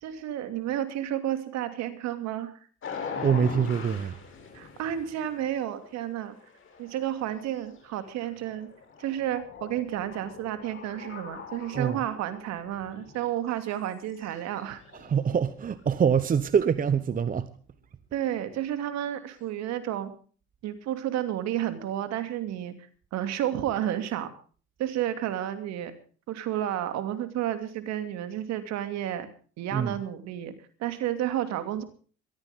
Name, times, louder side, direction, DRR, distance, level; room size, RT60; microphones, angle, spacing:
voice 1, 0.0-2.6 4.5-6.4 6.8-8.7 9.0-14.8 18.1-20.1 20.6-22.7 23.1-24.3 24.8-26.0 26.3-29.3 29.6-31.8, right 11 dB, 60° right, 2.7 m, -31 dB
sound 1, 2.8-13.6 13.9-17.0, left 5 dB, 40° left, 6.6 m, -43 dB
voice 2, 3.2-4.2 11.7-12.0 14.9-17.5 29.7-30.0, right 7 dB, 25° right, 0.9 m, -25 dB
22.0 x 14.0 x 3.7 m
hypercardioid pair, 80°, 31 cm